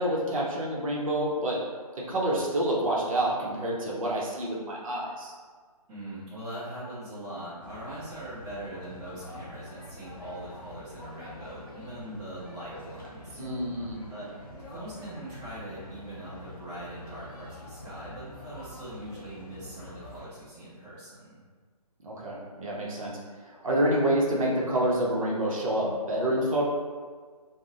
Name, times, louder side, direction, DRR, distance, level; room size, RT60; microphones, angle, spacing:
voice 1, 0.0-1.6 2.1-5.3 13.4-14.0 22.0-23.2 23.4-26.6, right 1 dB, 55° right, -4 dB, 0.7 m, -28 dB
voice 2, 5.9-13.4 14.1-14.3 14.7-21.4, right 1 dB, 15° right, -11 dB, 0.6 m, -41 dB
sound 1, 7.6-20.3, left 1 dB, 30° left, 0.5 m, -46 dB
2.5 x 2.0 x 3.7 m, 1.5 s
figure-of-eight pair, 155°, 20 cm